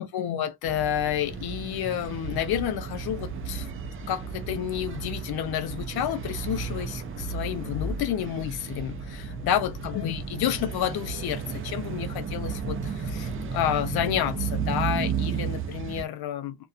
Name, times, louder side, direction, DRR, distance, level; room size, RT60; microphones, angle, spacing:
voice 1, 0.0-3.7 4.1-16.6, left 10 dB, 80° left, 0.5 m, -30 dB
sound 1, 0.6-16.1, right 5 dB, 35° right, 0.4 m, -33 dB
2.7 x 2.1 x 2.3 m
wide cardioid pair, 180°, 37 cm